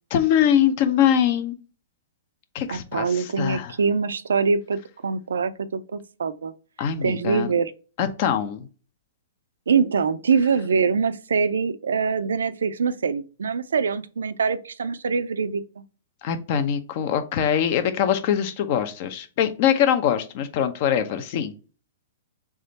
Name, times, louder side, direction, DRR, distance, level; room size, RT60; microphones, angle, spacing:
voice 1, 0.1-1.6 2.5-3.7 6.8-7.5 8.0-8.7 16.2-21.5, left 9 dB, 50° left, 0.7 m, -23 dB
voice 2, 2.7-6.5 7.0-7.7 9.7-15.8, right 5 dB, 85° right, 0.4 m, -24 dB
3.6 x 3.3 x 4.1 m
hypercardioid pair, 125°, 0 cm